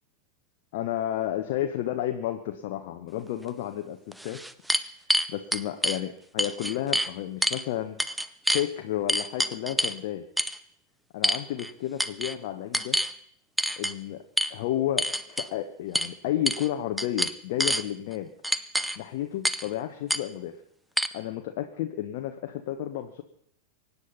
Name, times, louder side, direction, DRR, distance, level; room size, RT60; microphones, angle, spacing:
voice 1, 0.7-4.4 5.3-8.2 8.5-10.2 11.1-13.0 13.8-14.2 14.5-18.3 19.0-20.6 21.1-23.2, left 12 dB, 50° left, 5 dB, 1.2 m, -32 dB
sound 1, 3.5-3.6 4.1-6.0 6.4-7.1 7.4-7.6 8.0-8.7 9.1-10.0 10.4-10.6 11.2-11.7 12.0-12.3 12.7-13.1 13.6-13.9 14.4-14.5 15.0-15.5 15.9-16.1 16.5-16.7 17.0-17.8 18.4-19.0 19.4-19.7 20.1-20.2 21.0-21.1, equal, 5° right, 0.7 m, -26 dB
24.0 x 9.9 x 5.6 m, 0.71 s
figure-of-eight pair, 90°, 0 cm